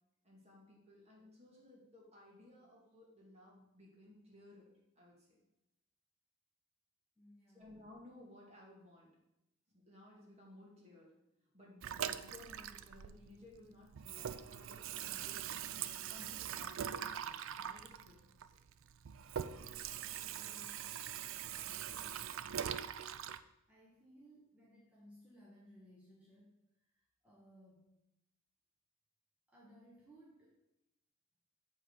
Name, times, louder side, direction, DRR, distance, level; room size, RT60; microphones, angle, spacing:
voice 1, 0.2-5.4 7.5-9.2 9.7-11.2 11.5-15.7 16.1-18.4, left 1 dB, 30° right, -3 dB, 2.2 m, -59 dB
voice 2, 7.2-7.7 20.2-20.8 21.5-22.7 23.7-27.9 29.5-30.6, equal, 5° right, -6 dB, 1.1 m, -62 dB
Water tap faucet / Sink (filling or washing), 11.8-13.6 13.9-23.4, right 9 dB, 60° right, 0.4 m, -42 dB
7.8 x 3.9 x 6.5 m, 0.88 s
head